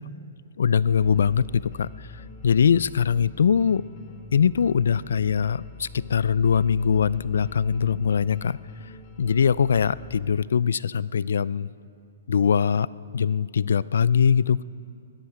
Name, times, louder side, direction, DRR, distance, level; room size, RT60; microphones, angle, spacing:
voice 1, 0.6-1.9 2.4-3.8 4.3-8.6 9.2-11.7 12.3-12.9 13.1-14.6, left 7 dB, 80° left, 20 dB, 0.3 m, -22 dB
sound 1, 0.9-10.2, left 3 dB, 35° left, 1.7 m, -43 dB
19.5 x 11.5 x 6.1 m, 2.4 s
hypercardioid pair, 170°, 0 cm